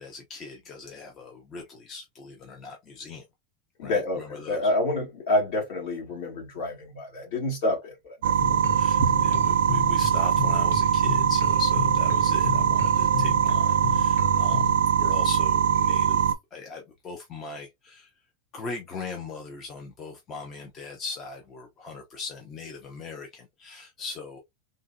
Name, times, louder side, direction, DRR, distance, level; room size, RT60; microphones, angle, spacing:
voice 1, 0.0-3.2 3.8-4.7 8.6-18.1 18.5-24.4, left 4 dB, 20° left, 0.5 m, -39 dB
voice 2, 3.8-8.8, left 1 dB, 55° left, 1.7 m, -28 dB
sound 1, 8.2-16.3, right 8 dB, 75° right, 0.3 m, -22 dB
sound 2, 8.4-14.8, left 6 dB, 80° left, 0.9 m, -33 dB
3.7 x 2.1 x 2.5 m
supercardioid pair, 170°, 0 cm